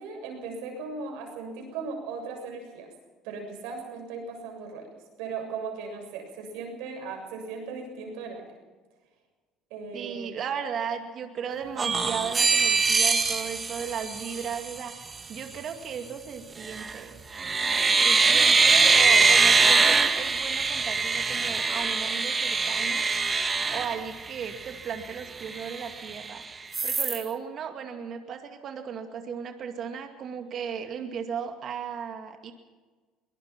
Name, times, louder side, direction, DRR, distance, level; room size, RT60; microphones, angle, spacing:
voice 1, 0.0-2.9 3.2-4.9 5.2-8.4 9.7-10.4 18.2-19.0, right 5 dB, 85° right, 3 dB, 7.2 m, -37 dB
voice 2, 9.9-17.2 18.0-23.0 23.7-26.4 26.8-32.5, right 7 dB, 50° right, 5 dB, 2.2 m, -36 dB
sound 1, 11.8-14.8 16.6-17.0 17.3-24.6 25.0-25.1 25.4-26.3 26.7-27.2, right 4 dB, 25° right, 1.8 m, -23 dB
22.5 x 19.0 x 5.9 m, 1.4 s
supercardioid pair, 100°, 0 cm